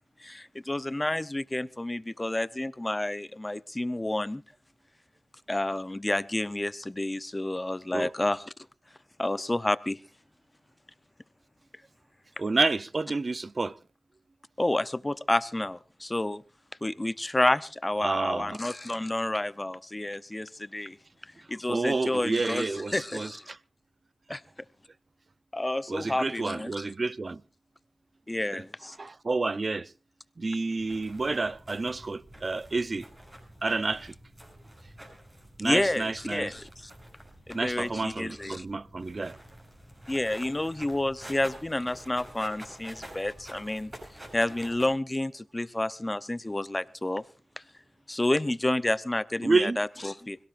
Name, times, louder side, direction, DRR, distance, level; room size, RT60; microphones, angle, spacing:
voice 1, 0.2-4.4 5.5-8.4 9.2-10.0 14.6-16.4 16.8-21.0 21.5-23.5 24.3-24.4 25.5-26.8 28.3-29.0 35.6-36.9 37.5-38.7 40.1-43.9 44.3-47.2 48.1-50.4, left 1 dB, 20° left, 0.6 m, -30 dB
voice 2, 12.4-13.7 18.0-18.6 21.7-23.6 25.9-27.4 28.5-28.6 29.0-29.9 30.4-33.1 33.6-34.1 35.6-36.5 37.5-39.4 49.4-49.8, right 3 dB, 45° right, 0.6 m, -29 dB
sound 1, 30.8-44.9, right 1 dB, 20° right, 7.3 m, -48 dB
25.0 x 17.5 x 2.5 m
cardioid pair, 60°, 0 cm